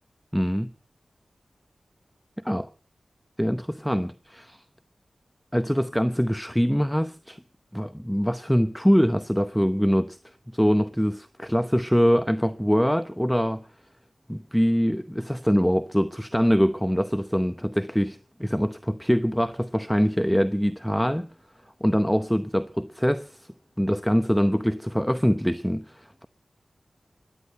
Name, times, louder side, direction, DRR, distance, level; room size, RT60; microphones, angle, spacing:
voice 1, 0.3-0.7 2.4-2.7 3.4-4.6 5.5-7.4 7.7-10.2 10.5-13.6 14.3-21.3 21.8-23.5 23.8-26.2, equal, 5° left, 0.7 m, -23 dB
16.5 x 11.5 x 6.5 m
wide cardioid pair, 75°, 0 cm